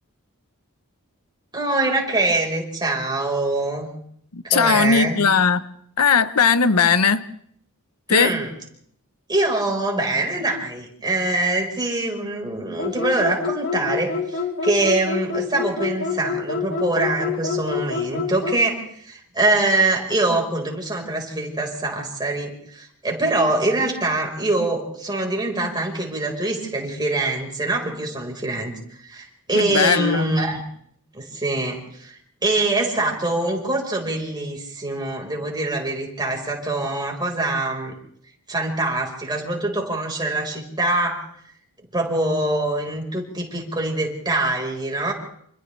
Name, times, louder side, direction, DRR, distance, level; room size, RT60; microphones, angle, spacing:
voice 1, 1.5-3.9 4.4-5.2 8.1-8.5 9.3-28.7 29.0-30.6 31.1-37.9 38.5-41.2 41.9-45.1, right 2 dB, 20° right, 0 dB, 4.7 m, -24 dB
voice 2, 4.3-5.7 6.0-7.2 8.1-8.4 29.5-30.3, left 6 dB, 90° left, 13 dB, 1.0 m, -18 dB
sound 1, 12.8-18.6, left 5 dB, 60° left, 3.1 m, -27 dB
29.5 x 27.0 x 3.4 m, 0.65 s
head